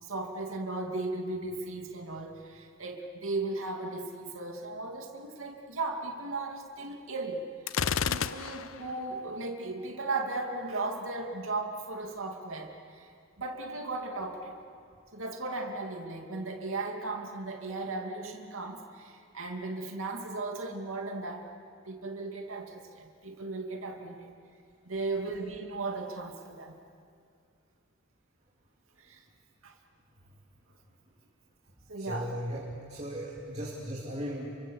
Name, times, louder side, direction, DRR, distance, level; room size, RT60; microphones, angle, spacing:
voice 1, 0.0-7.4 8.1-13.1 13.4-14.6 15.1-21.5 21.8-24.3 24.8-26.8 29.0-29.2 29.6-29.7 31.9-32.3, right 3 dB, 75° right, 2 dB, 2.5 m, -36 dB
Gunshot gunfire, 7.7-8.9, left 7 dB, 75° left, 0.6 m, -30 dB
voice 2, 32.0-34.6, equal, 30° right, -3 dB, 3.0 m, -37 dB
28.5 x 24.5 x 7.2 m, 2.4 s
head